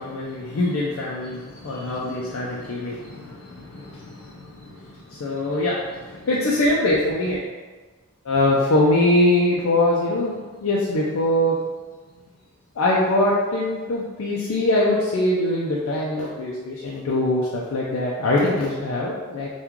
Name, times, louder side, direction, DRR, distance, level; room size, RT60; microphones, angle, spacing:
voice 1, 0.0-7.4 8.2-10.4 10.6-11.6 12.8-19.5, left 1 dB, 65° left, -5 dB, 0.4 m, -23 dB
2.9 x 2.3 x 3.6 m, 1.3 s
head